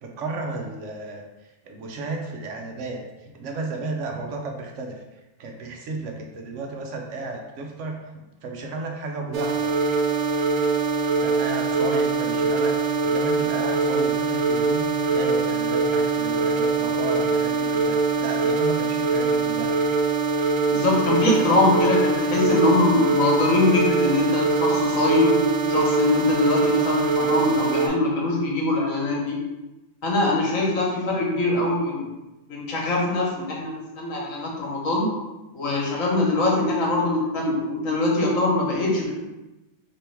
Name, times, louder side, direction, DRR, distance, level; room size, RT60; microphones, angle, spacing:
voice 1, 0.0-1.2 1.6-5.0 5.4-8.1 8.4-9.7 11.2-19.7, right 3 dB, 65° right, 2 dB, 0.9 m, -33 dB
sound 1, 9.3-27.9, right 4 dB, 80° right, 1.1 m, -23 dB
voice 2, 20.7-25.4 25.7-29.4 30.0-32.1 32.5-35.1 35.5-39.1, left 2 dB, 65° left, -2 dB, 1.4 m, -22 dB
3.4 x 3.0 x 4.4 m, 1.0 s
omnidirectional pair, 1.5 m